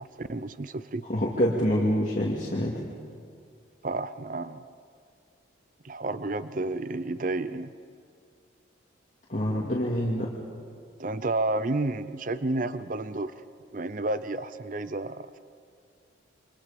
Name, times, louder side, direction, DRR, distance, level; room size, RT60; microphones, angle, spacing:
voice 1, 0.0-1.1 3.8-4.6 5.8-7.7 11.0-13.3 13.7-15.4, right 2 dB, 40° right, 13 dB, 0.6 m, -31 dB
voice 2, 1.1-2.8 9.3-10.3, equal, 40° left, -5 dB, 2.6 m, -26 dB
28.0 x 25.5 x 5.3 m, 2.2 s
head